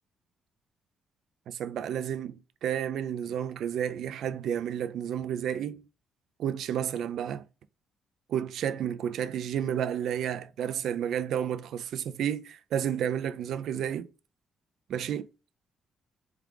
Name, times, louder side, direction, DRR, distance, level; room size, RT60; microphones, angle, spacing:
voice 1, 1.5-2.4 2.6-5.8 6.4-7.4 8.3-14.1 14.9-15.3, right 9 dB, 70° right, 0.4 m, -31 dB
4.5 x 2.4 x 3.6 m
cardioid pair, 105°, 0 cm